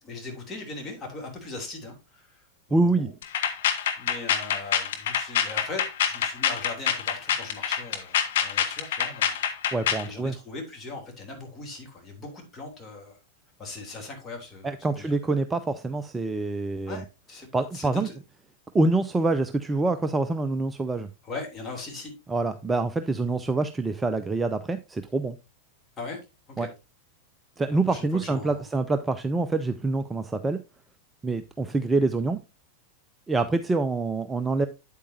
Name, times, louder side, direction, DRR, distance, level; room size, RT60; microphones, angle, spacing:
voice 1, 0.0-2.4 2.7-3.1 4.0-9.4 10.0-13.2 13.6-15.1 16.9-17.5 17.7-18.2 21.2-22.1 26.0-26.2 26.6-26.7 27.9-28.7, left 3 dB, 20° left, 1 dB, 3.1 m, -39 dB
voice 2, 2.7-3.1 9.7-10.4 14.6-17.0 17.5-18.1 18.7-21.1 22.3-25.4 26.6-26.7 27.6-30.6 31.2-32.4 33.3-34.7, right 3 dB, 10° right, 10 dB, 0.5 m, -26 dB
sound 1, 3.2-10.1, left 9 dB, 55° left, 1.3 m, -25 dB
8.9 x 8.3 x 2.7 m, 0.26 s
figure-of-eight pair, 90°, 0 cm